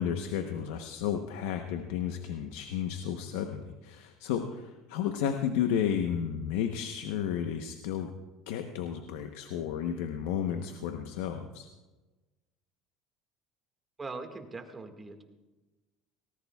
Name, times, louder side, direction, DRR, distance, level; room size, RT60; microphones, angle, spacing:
voice 1, 0.0-8.1 8.5-11.7, left 8 dB, 85° left, 6 dB, 0.9 m, -32 dB
voice 2, 14.0-15.2, right 3 dB, 20° right, 5 dB, 1.9 m, -41 dB
18.5 x 18.5 x 2.4 m, 1.2 s
supercardioid pair, 110°, 0 cm